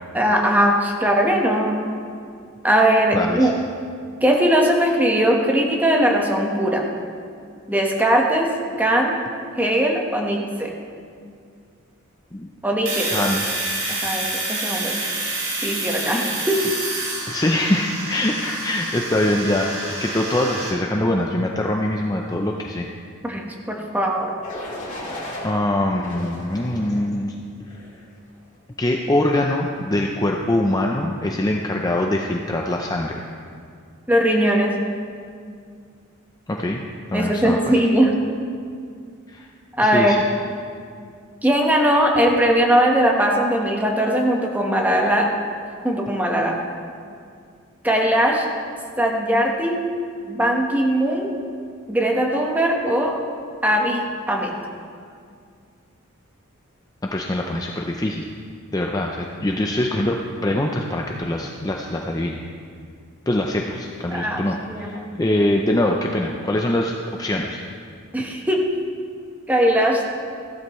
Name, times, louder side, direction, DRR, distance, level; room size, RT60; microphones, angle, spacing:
voice 1, 0.1-1.8 2.6-3.5 4.2-6.9 7.7-8.5 8.8-9.2 9.6-10.7 12.6-13.3 13.9-15.0 15.6-16.6 23.2-24.3 34.1-34.7 37.1-38.1 39.8-40.2 41.4-45.3 45.8-46.6 47.8-48.4 49.0-49.8 50.3-51.3 51.9-53.2 53.6-54.5 64.1-64.4 64.7-65.1 68.1-68.6 69.5-70.0, right 1 dB, 10° right, 0 dB, 1.2 m, -20 dB
voice 2, 3.1-3.5 12.3-12.5 13.1-13.6 16.5-16.7 17.3-22.9 25.4-27.3 28.8-33.2 36.5-36.8 37.1-37.6 39.3-39.5 39.8-40.2 57.0-58.3 58.7-62.4 63.3-66.9 67.2-67.6, left 1 dB, 20° left, 1 dB, 0.5 m, -23 dB
Domestic sounds home sounds, 12.9-20.7, right 2 dB, 85° right, 3.6 m, -28 dB
sound 1, 24.4-25.5 26.0-27.1 27.6-28.0, left 1 dB, 35° left, 2.1 m, -35 dB
14.5 x 12.5 x 3.1 m, 2.2 s
head